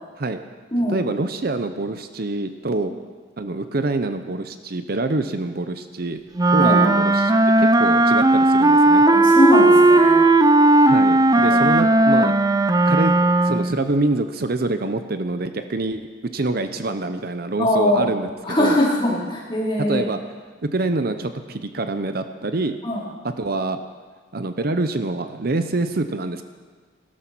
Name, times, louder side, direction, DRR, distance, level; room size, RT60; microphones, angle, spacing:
voice 1, 0.9-2.9 3.4-6.2 6.5-9.0 10.9-12.3 12.8-13.1 13.4-16.1 16.3-18.3 18.6-18.8 19.9-20.2 20.7-22.7 23.4-23.8 24.3-26.4, right 2 dB, 50° right, 9 dB, 0.7 m, -25 dB
Wind instrument woodwind instrument, 6.4-13.8, right 2 dB, 20° right, 0.5 m, -15 dB
voice 2, 9.1-10.2 11.3-11.7 17.6-18.1 18.4-20.1 22.8-23.0, left 1 dB, 25° left, -5 dB, 4.4 m, -21 dB
17.0 x 12.5 x 6.2 m, 1.5 s
head